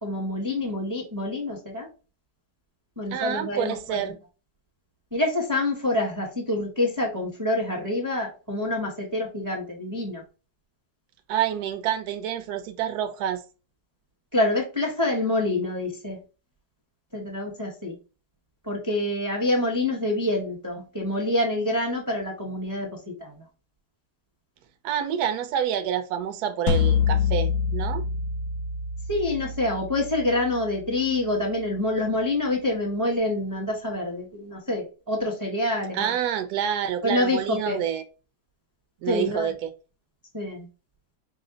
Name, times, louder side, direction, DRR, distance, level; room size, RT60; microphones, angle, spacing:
voice 1, 0.0-1.9 3.0-4.0 5.1-10.2 14.3-16.2 17.1-18.0 18.6-23.3 29.1-36.0 37.0-37.8 39.0-39.5 40.3-40.7, left 1 dB, 15° right, 0.7 m, -27 dB
voice 2, 3.1-4.2 11.3-13.4 24.8-28.0 35.9-38.0 39.0-39.7, right 9 dB, 70° right, 1.1 m, -28 dB
sound 1, 26.7-31.7, left 6 dB, 85° left, 1.3 m, -27 dB
4.8 x 2.1 x 3.7 m
omnidirectional pair, 1.9 m